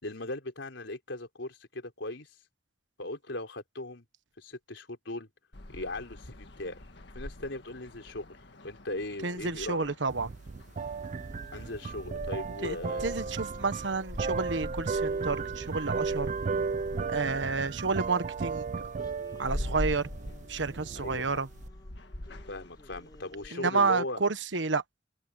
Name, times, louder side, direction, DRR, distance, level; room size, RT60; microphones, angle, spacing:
voice 1, 0.0-2.3 3.0-4.0 4.4-5.3 5.7-6.8 7.1-8.3 8.6-9.9 11.5-13.3 21.0-21.4 22.5-24.2, left 2 dB, 85° left, 4.0 m, -38 dB
sound 1, 5.5-23.5, left 1 dB, 65° left, 1.7 m, -44 dB
voice 2, 9.2-10.3 12.6-16.3 17.1-18.7 19.4-20.1 20.5-21.5 23.5-24.8, right 4 dB, 80° right, 1.3 m, -30 dB
sound 2, 10.1-21.7, right 4 dB, 40° right, 0.4 m, -35 dB
sound 3, 10.8-14.0 14.9-17.9 19.0-24.2, left 1 dB, 25° left, 4.0 m, -56 dB
open air
head